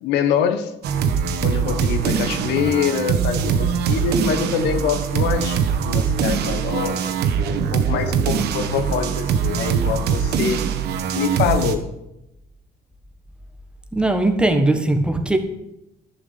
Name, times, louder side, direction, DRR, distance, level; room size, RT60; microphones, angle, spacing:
voice 1, 0.0-0.7 1.4-7.0 7.7-10.6 11.1-11.8, left 8 dB, 85° left, 9 dB, 1.1 m, -24 dB
sound 1, 0.8-11.7, right 7 dB, 75° right, 1.2 m, -22 dB
voice 2, 13.9-15.4, right 2 dB, 5° right, 5 dB, 1.5 m, -19 dB
11.0 x 5.9 x 8.3 m, 0.87 s
cardioid pair, 110°, 17 cm